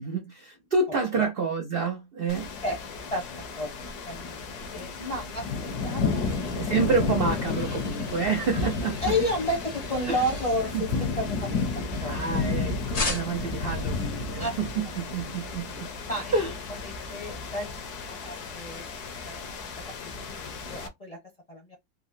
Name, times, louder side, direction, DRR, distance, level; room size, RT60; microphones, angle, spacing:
voice 1, 0.0-2.5 6.5-9.1 10.1-10.2 10.7-10.8 12.0-16.0 16.3-16.5, right 4 dB, 70° right, 0.5 m, -28 dB
sound 1, 2.3-20.9, left 4 dB, 70° left, 1.3 m, -32 dB
voice 2, 3.1-3.7 4.1-6.6 9.0-11.6 12.0-12.4 14.4-14.6 16.1-16.3 16.7-18.9 19.2-21.2 21.5-21.7, left 1 dB, 35° left, 0.6 m, -32 dB
sound 2, 5.5-12.5 12.9-13.6, left 3 dB, 85° left, 0.3 m, -39 dB
3.7 x 2.0 x 2.5 m
omnidirectional pair, 1.8 m